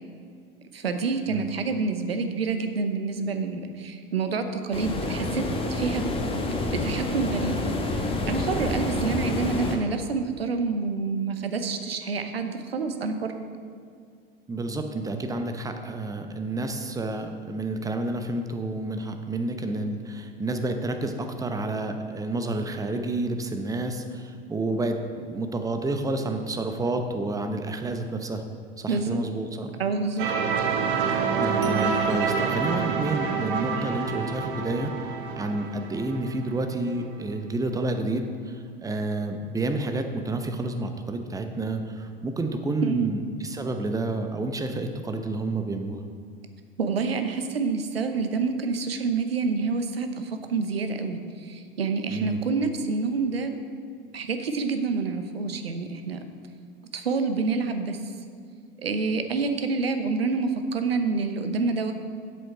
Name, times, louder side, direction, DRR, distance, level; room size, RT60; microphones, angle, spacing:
voice 1, 0.7-5.4 5.7-6.0 6.3-6.4 6.7-7.6 8.2-13.4 28.9-29.2 29.8-30.3 42.8-43.1 46.8-53.6 54.1-56.2 56.9-58.0 58.8-61.9, right 4 dB, 80° right, 8 dB, 0.8 m, -27 dB
sound 1, 4.7-9.8, left 2 dB, 20° left, 1.2 m, -28 dB
voice 2, 14.5-28.4 28.8-29.7 30.2-30.3 31.3-46.0 52.1-52.4, right 2 dB, 10° right, 6 dB, 0.8 m, -30 dB
sound 2, 30.2-36.9, right 5 dB, 60° right, 1.1 m, -27 dB
7.8 x 7.7 x 5.5 m, 2.2 s
figure-of-eight pair, 80°, 29 cm